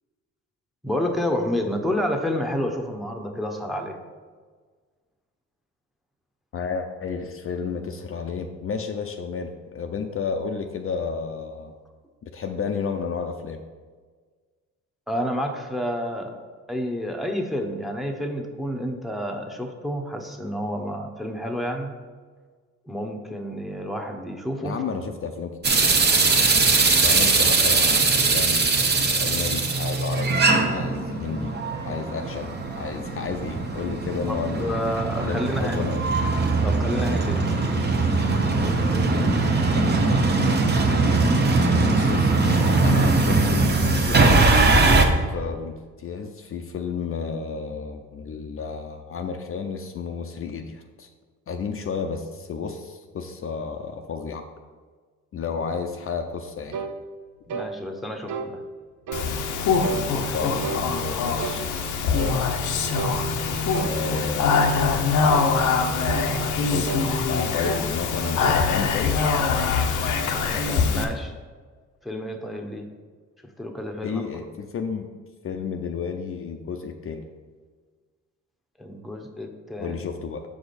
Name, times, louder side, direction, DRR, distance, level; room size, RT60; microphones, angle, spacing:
voice 1, 0.8-4.0 15.1-16.3 16.7-21.9 22.9-24.8 34.3-35.9 36.6-37.6 38.6-39.7 57.5-58.6 59.9-60.5 70.4-71.3 72.0-72.9 73.6-74.2 78.8-80.0, equal, ahead, 3 dB, 0.9 m, -30 dB
voice 2, 6.5-11.7 12.2-13.6 24.6-25.9 27.0-30.4 30.7-31.5 31.9-34.7 35.2-36.1 39.1-39.9 41.8-51.1 51.5-54.5 55.3-56.8 60.3-61.7 62.0-62.5 63.8-65.0 66.5-67.0 67.2-69.2 74.0-75.1 75.4-77.3 79.8-80.4, left 5 dB, 45° left, 5 dB, 0.6 m, -32 dB
sound 1, 25.6-45.1, right 3 dB, 35° right, 0.9 m, -21 dB
sound 2, 56.7-57.0 57.5-57.7 58.3-58.5 59.1-59.3 59.8-60.1 60.6-60.9 61.4-61.6 62.2-62.4 62.9-63.2 63.7-64.0 64.5-64.8 65.3-65.5 66.1-66.3 66.9-67.1 67.6-67.9 68.2-68.7, right 5 dB, 75° right, 0.6 m, -32 dB
Speech, 59.1-71.0, left 5 dB, 80° left, 0.8 m, -23 dB
7.1 x 4.9 x 4.1 m, 1.5 s
cardioid pair, 90°, 30 cm